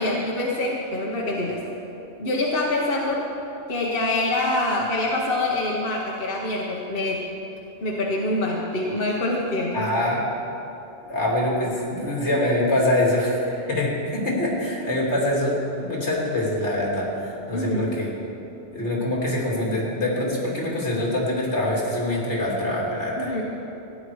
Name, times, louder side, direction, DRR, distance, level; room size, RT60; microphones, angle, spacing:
voice 1, 0.0-1.6 2.2-3.3 3.7-7.2 7.8-9.9 17.5-17.8 23.2-23.4, left 2 dB, 55° left, -2 dB, 1.3 m, -25 dB
voice 2, 9.7-10.3 11.1-18.1 18.7-23.4, left 1 dB, 75° left, -3 dB, 2.8 m, -24 dB
15.5 x 9.9 x 4.7 m, 2.9 s
omnidirectional pair, 1.2 m